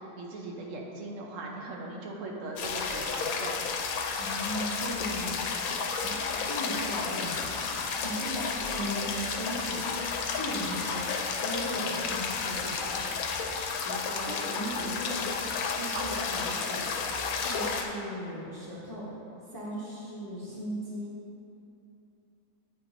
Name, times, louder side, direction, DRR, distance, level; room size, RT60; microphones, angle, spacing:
voice 1, 0.1-3.6 8.2-8.4 14.1-15.4 15.9-16.0, right 2 dB, 65° right, -1 dB, 1.0 m, -40 dB
sound 1, 2.6-17.8, left 5 dB, 75° left, 1.0 m, -32 dB
voice 2, 4.2-5.5 6.0-9.8 10.3-11.0 11.3-13.0 13.8-15.3 15.7-16.9 17.4-19.1 19.5-21.1, equal, 20° left, -7 dB, 0.6 m, -37 dB
8.6 x 2.9 x 4.0 m, 2.7 s
omnidirectional pair, 1.5 m